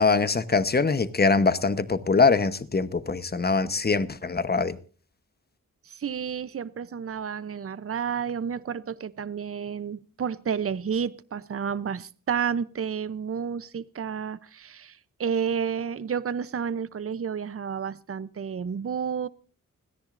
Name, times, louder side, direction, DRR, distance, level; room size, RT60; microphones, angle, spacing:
voice 1, 0.0-4.8, left 4 dB, 30° left, 1.0 m, -23 dB
voice 2, 5.9-19.3, right 7 dB, 45° right, 0.7 m, -31 dB
30.0 x 10.5 x 2.5 m
cardioid pair, 65°, 32 cm